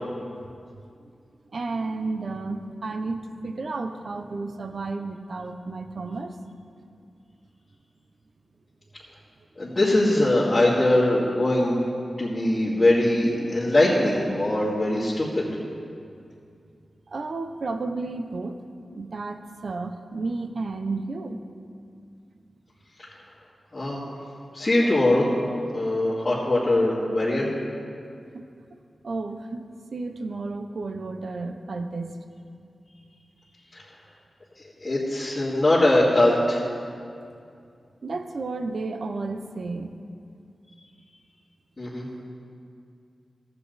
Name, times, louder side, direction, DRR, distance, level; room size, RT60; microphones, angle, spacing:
voice 1, 1.5-6.4 17.1-18.6 18.9-21.4 28.3-28.5 29.0-32.2 38.0-39.9, right 3 dB, 65° right, 8 dB, 0.6 m, -32 dB
voice 2, 9.6-11.8 12.2-15.4 23.0-23.1 23.7-24.1 24.5-25.2 25.7-27.5 33.7-33.8 34.8-36.6 41.8-42.1, left 1 dB, 30° left, -10 dB, 2.3 m, -21 dB
14.5 x 8.2 x 4.1 m, 2.4 s
wide cardioid pair, 90°, 0 cm